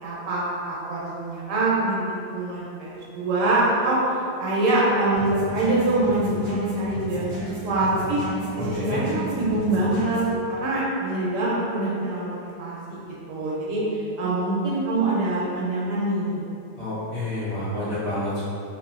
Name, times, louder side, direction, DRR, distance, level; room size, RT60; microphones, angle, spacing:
voice 1, 0.0-4.0 4.4-8.2 8.6-10.2 10.5-16.4, right 2 dB, 70° right, -6 dB, 0.9 m, -25 dB
sound 1, 5.1-10.4, right 2 dB, 50° right, 0.5 m, -33 dB
voice 2, 8.5-9.0 16.8-18.4, left 1 dB, 50° left, -12 dB, 0.9 m, -29 dB
2.6 x 2.4 x 2.3 m, 2.6 s
omnidirectional pair, 1.4 m